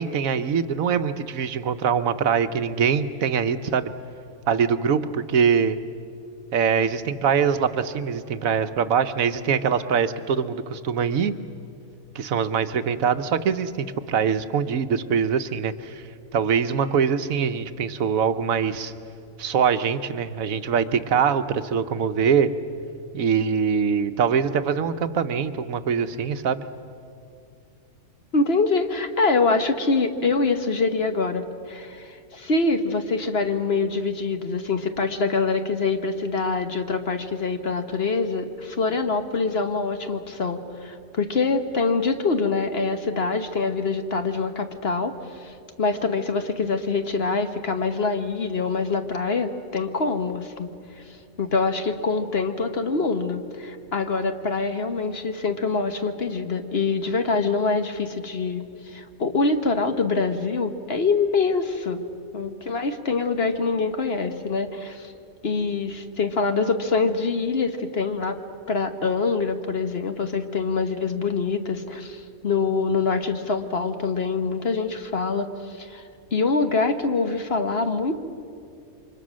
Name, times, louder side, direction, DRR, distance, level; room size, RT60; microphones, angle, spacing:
voice 1, 0.0-3.9 4.5-5.8 6.5-11.3 12.1-16.0 16.3-18.9 19.4-22.5 23.1-26.6, right 7 dB, 75° right, 10 dB, 1.3 m, -23 dB
voice 2, 28.3-50.7 51.4-62.0 62.3-65.1 65.4-68.4 68.7-76.0 76.3-78.1, left 4 dB, 45° left, 7 dB, 1.3 m, -25 dB
28.5 x 24.5 x 6.3 m, 2.5 s
omnidirectional pair, 1.5 m